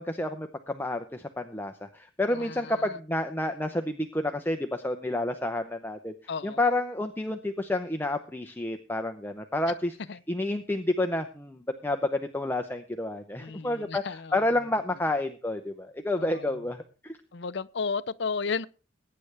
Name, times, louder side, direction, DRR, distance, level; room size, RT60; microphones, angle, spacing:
voice 1, 0.0-6.1 6.4-9.9 10.3-17.2, left 1 dB, 10° left, 0.7 m, -30 dB
voice 2, 2.3-3.0 6.3-6.6 10.1-10.2 13.4-14.4 16.2-16.7 17.3-18.7, left 5 dB, 60° left, 0.6 m, -34 dB
21.5 x 9.8 x 3.4 m
head